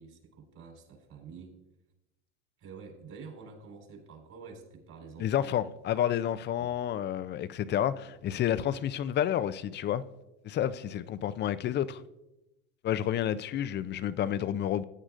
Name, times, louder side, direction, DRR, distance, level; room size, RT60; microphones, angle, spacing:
voice 1, 0.0-1.6 2.6-5.6 6.6-6.7, right 5 dB, 45° right, 4.2 m, -48 dB
voice 2, 5.2-10.0 10.4-12.0 12.8-14.8, left 10 dB, 30° left, 0.4 m, -30 dB
15.5 x 9.8 x 2.5 m
supercardioid pair, 105°, 38 cm